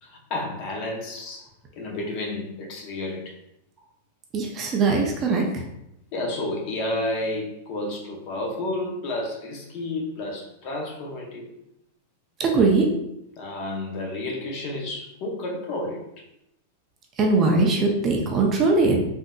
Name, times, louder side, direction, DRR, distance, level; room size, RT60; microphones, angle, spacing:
voice 1, 0.0-1.5 1.7-3.4 6.1-11.5 13.4-16.3, left 2 dB, 40° left, 0 dB, 0.7 m, -31 dB
voice 2, 4.3-5.6 12.4-12.9 17.2-19.0, right 3 dB, 25° right, 1 dB, 0.4 m, -21 dB
3.7 x 2.6 x 2.2 m, 0.82 s
supercardioid pair, 160°, 0 cm